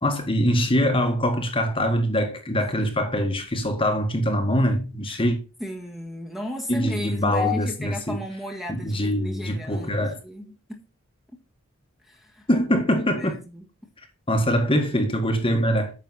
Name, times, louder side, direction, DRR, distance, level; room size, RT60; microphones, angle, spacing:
voice 1, 0.0-5.4 6.7-8.2 8.7-10.2 12.5-13.4 14.3-15.9, equal, 25° left, 1.6 m, -23 dB
voice 2, 5.6-10.8 11.3-11.4 12.0-12.5 13.0-13.7, equal, ahead, 1.6 m, -35 dB
9.4 x 6.8 x 4.1 m
head